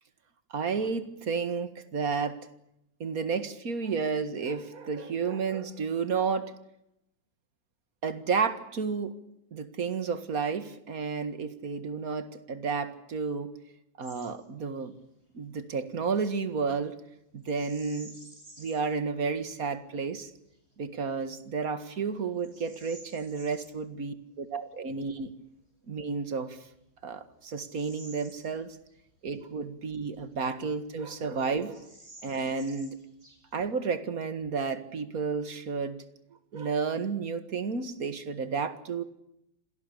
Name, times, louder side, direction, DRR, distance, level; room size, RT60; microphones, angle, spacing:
voice 1, 0.5-2.5 3.0-6.5 8.0-9.2 9.5-13.5 14.0-14.9 15.3-17.0 17.3-18.2 18.6-20.3 20.8-25.3 25.9-26.6 27.0-28.8 29.2-31.9 32.2-33.0 33.5-36.0 36.5-39.0, right 5 dB, 50° right, 11 dB, 2.2 m, -31 dB
Bird vocalization bird call bird song, 14.0-14.3 14.6-14.9 17.4-18.9 19.5-19.6 20.2-20.6 21.2-21.3 21.8-23.7 25.8-25.9 26.6-29.0 29.3-29.4 30.1-30.9 31.2-31.3 31.6-33.7, right 1 dB, 35° right, 8.6 m, -53 dB
27.0 x 18.5 x 8.4 m, 0.81 s
omnidirectional pair, 2.0 m